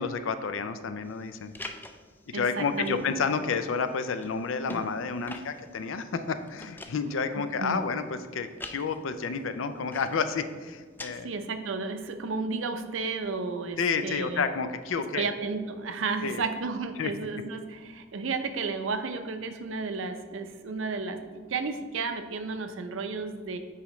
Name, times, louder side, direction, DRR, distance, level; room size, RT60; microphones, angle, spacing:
voice 1, 0.0-1.5 2.3-11.3 13.8-15.2 16.2-16.4 17.0-17.1, left 5 dB, 75° left, 10 dB, 0.5 m, -30 dB
sound 1, 1.1-11.1, left 2 dB, 10° left, 0.3 m, -47 dB
voice 2, 2.3-3.1 7.6-7.9 11.1-14.4 15.1-23.6, right 4 dB, 70° right, 7 dB, 0.6 m, -33 dB
8.5 x 5.0 x 3.1 m, 1.5 s
head